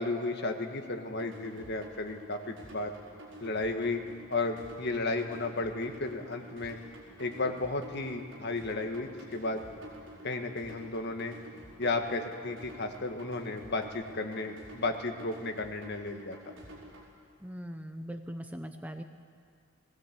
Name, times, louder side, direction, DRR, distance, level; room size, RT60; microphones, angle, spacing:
voice 1, 0.0-2.9 3.4-4.0 4.3-6.8 7.2-9.7 10.2-11.3 11.8-16.4, left 2 dB, 50° left, 5 dB, 1.5 m, -33 dB
sound 1, 1.1-17.1, equal, 60° right, 4.8 m, -50 dB
voice 2, 17.4-19.0, equal, 5° right, 6 dB, 0.7 m, -40 dB
20.0 x 17.0 x 8.4 m, 2.2 s
head